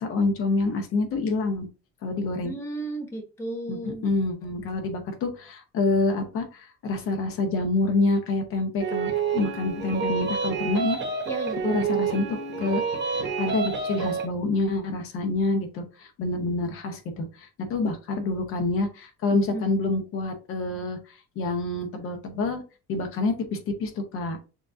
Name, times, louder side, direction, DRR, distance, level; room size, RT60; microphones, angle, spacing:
voice 1, 0.0-1.7 2.0-2.5 3.7-11.0 11.6-22.6 22.9-24.4, left 3 dB, 45° left, 5 dB, 0.8 m, -27 dB
voice 2, 2.4-4.1 11.3-11.6 19.5-19.6, right 1 dB, 10° left, 2 dB, 0.8 m, -34 dB
sound 1, 8.8-14.3, right 6 dB, 40° right, 1.0 m, -28 dB
6.5 x 2.5 x 2.6 m, 0.33 s
cardioid pair, 165°, 30 cm